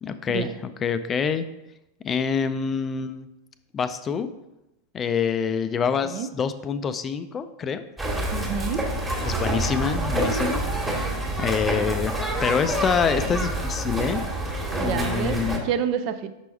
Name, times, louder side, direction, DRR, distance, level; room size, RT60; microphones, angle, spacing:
voice 1, 0.0-1.5 2.0-3.3 3.7-4.3 4.9-7.8 9.2-14.2 14.8-15.6, left 6 dB, 25° left, 11 dB, 0.3 m, -26 dB
sound 1, 8.0-15.6, right 1 dB, 10° right, 1.3 m, -27 dB
voice 2, 8.3-8.9 14.8-16.3, right 8 dB, 45° right, 11 dB, 0.4 m, -29 dB
6.0 x 4.6 x 4.5 m, 0.93 s
figure-of-eight pair, 90°, 0 cm